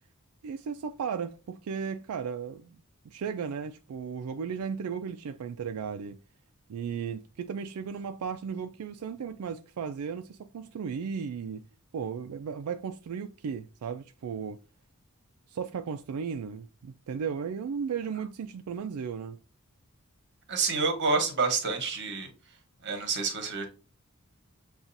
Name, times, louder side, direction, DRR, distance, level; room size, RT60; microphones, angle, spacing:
voice 1, 0.4-2.8 3.0-6.2 6.7-11.7 11.9-14.6 15.5-19.4, right 6 dB, 90° right, 0.4 m, -35 dB
voice 2, 20.5-22.3 22.8-23.7, right 4 dB, 55° right, 1.0 m, -28 dB
7.1 x 2.4 x 2.6 m
head